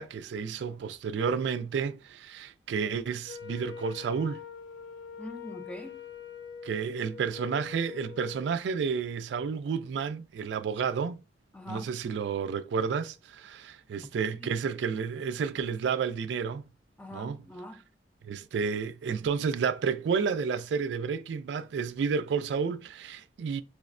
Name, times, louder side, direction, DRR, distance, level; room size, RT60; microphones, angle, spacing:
voice 1, 0.0-4.4 6.6-11.2 11.7-16.6 17.1-17.4 18.2-23.6, right 6 dB, 85° right, 0.3 m, -31 dB
Wind instrument woodwind instrument, 3.2-8.5, left 7 dB, 80° left, 0.5 m, -44 dB
voice 2, 5.2-6.0 11.5-12.0 14.3-14.6 17.0-17.8, left 1 dB, 5° left, 0.4 m, -43 dB
4.8 x 2.1 x 2.4 m
head